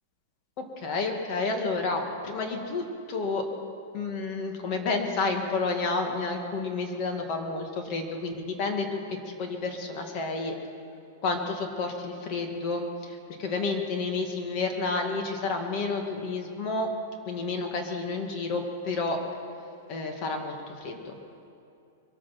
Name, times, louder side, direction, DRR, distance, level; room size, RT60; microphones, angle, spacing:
voice 1, 0.6-3.5 3.9-10.6 11.2-16.9 17.3-19.2 19.9-21.2, left 3 dB, 40° left, 3 dB, 2.1 m, -30 dB
23.0 x 8.9 x 6.0 m, 2.6 s
hypercardioid pair, 140°, 0 cm